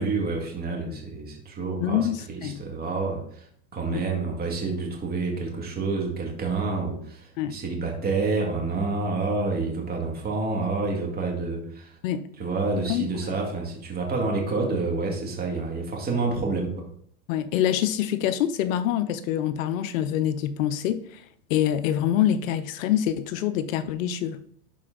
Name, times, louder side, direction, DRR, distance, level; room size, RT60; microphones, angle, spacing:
voice 1, 0.0-3.5 3.7-12.0 12.4-16.9, right 3 dB, 20° right, 1.9 m, -28 dB
voice 2, 1.8-2.6 3.9-4.0 7.4-7.6 12.0-12.3 12.9-13.1 17.3-21.2 21.5-24.4, left 11 dB, 60° left, 0.6 m, -25 dB
11.5 x 4.3 x 3.9 m
supercardioid pair, 135°, 47 cm